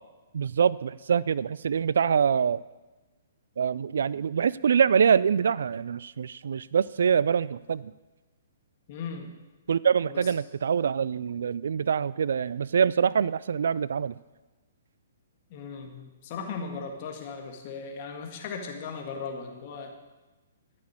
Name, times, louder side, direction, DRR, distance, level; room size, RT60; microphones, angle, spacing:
voice 1, 0.3-2.6 3.6-7.9 9.7-14.2, right 7 dB, 70° right, 20 dB, 0.3 m, -25 dB
voice 2, 8.9-9.3 10.1-10.3 15.5-19.9, left 5 dB, 45° left, 2 dB, 2.0 m, -37 dB
13.5 x 6.3 x 8.8 m, 1.2 s
hypercardioid pair, 130°, 0 cm